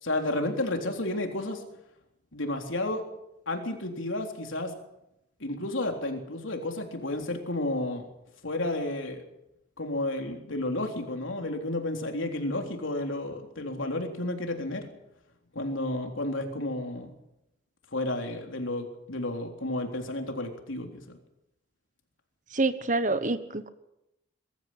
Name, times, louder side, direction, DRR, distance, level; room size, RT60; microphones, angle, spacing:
voice 1, 0.0-1.6 2.3-3.0 3.5-4.7 5.4-8.1 8.4-9.2 9.8-14.8 15.5-17.1 17.9-21.2, left 1 dB, 80° left, 3 dB, 3.7 m, -31 dB
voice 2, 22.5-23.7, right 2 dB, 40° right, 11 dB, 1.3 m, -27 dB
23.0 x 14.0 x 8.8 m, 0.88 s
head